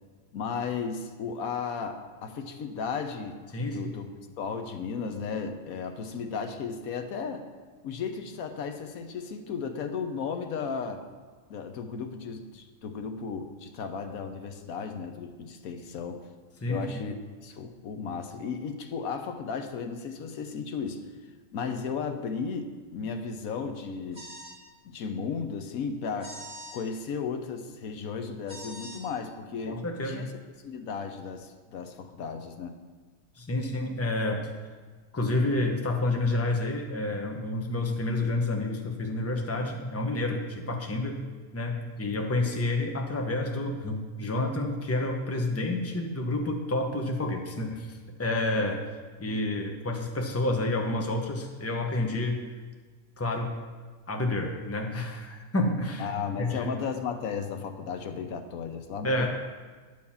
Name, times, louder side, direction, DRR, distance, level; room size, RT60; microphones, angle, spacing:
voice 1, 0.3-3.4 3.7-4.1 4.4-7.5 7.8-11.0 11.5-16.2 16.7-21.0 21.5-24.2 24.8-26.4 26.7-30.3 30.6-32.7 56.0-59.3, left 5 dB, 90° left, 7 dB, 1.3 m, -35 dB
voice 2, 3.5-3.9 16.6-17.0 29.6-30.2 33.4-34.5 35.1-41.2 41.5-48.8 49.2-52.4 53.2-53.5 54.1-56.7 59.0-59.3, left 2 dB, 15° left, 2 dB, 0.8 m, -29 dB
sound 1, 24.1-24.6 26.2-26.8 28.5-29.0, right 1 dB, 5° right, 2.1 m, -43 dB
10.5 x 4.7 x 7.1 m, 1.5 s
omnidirectional pair, 1.4 m